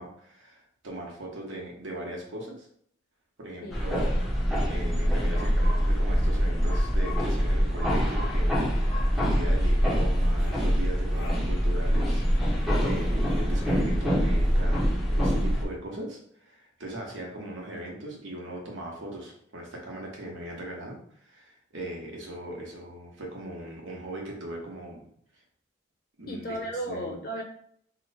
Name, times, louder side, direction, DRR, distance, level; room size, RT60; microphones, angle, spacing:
voice 1, 0.0-2.7 3.4-4.4 4.6-25.0 26.2-26.6 26.9-27.2, right 1 dB, 85° right, -1 dB, 1.0 m, -39 dB
sound 1, 3.7-15.7, equal, ahead, 0.6 m, -24 dB
sound 2, 10.2-10.6 11.1-11.4 13.3-13.9, left 2 dB, 85° left, 0.8 m, -44 dB
voice 2, 26.3-27.4, right 1 dB, 50° left, 1 dB, 0.7 m, -34 dB
3.0 x 2.1 x 4.0 m, 0.63 s
head